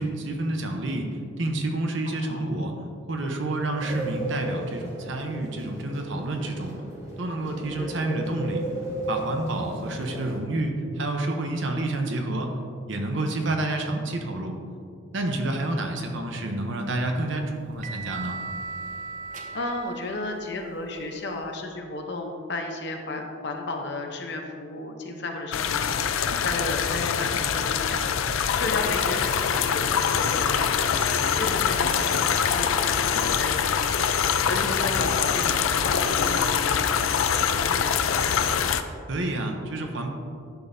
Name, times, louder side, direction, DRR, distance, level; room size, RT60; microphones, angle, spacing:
voice 1, 0.0-2.8 3.1-6.7 7.2-8.6 9.1-12.5 12.9-14.6 15.1-18.4 39.1-40.1, right 2 dB, 65° right, 3 dB, 0.8 m, -29 dB
voice 2, 2.1-2.5 7.8-7.9 19.5-28.1 28.5-34.0 34.5-38.4, left 2 dB, 55° left, 3 dB, 0.8 m, -33 dB
sound 1, 3.8-10.4, right 1 dB, 15° right, 1.2 m, -35 dB
sound 2, 16.7-21.6, right 4 dB, 40° right, 0.6 m, -39 dB
sound 3, 25.5-38.8, left 7 dB, 85° left, 0.4 m, -24 dB
10.5 x 6.1 x 2.7 m, 2.4 s
head